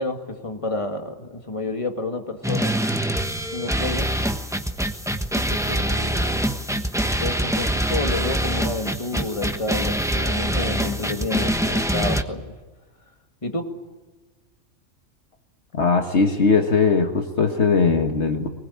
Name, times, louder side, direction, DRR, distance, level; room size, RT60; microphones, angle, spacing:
voice 1, 0.0-2.8 3.5-4.1 5.3-6.4 7.2-12.5 13.4-13.7, left 2 dB, 25° left, 5 dB, 2.2 m, -30 dB
sound 1, 2.4-12.2, right 1 dB, 5° right, 1.0 m, -24 dB
voice 2, 15.7-18.5, left 4 dB, 60° left, 5 dB, 1.7 m, -19 dB
23.0 x 20.5 x 8.6 m, 1.2 s
omnidirectional pair, 1.3 m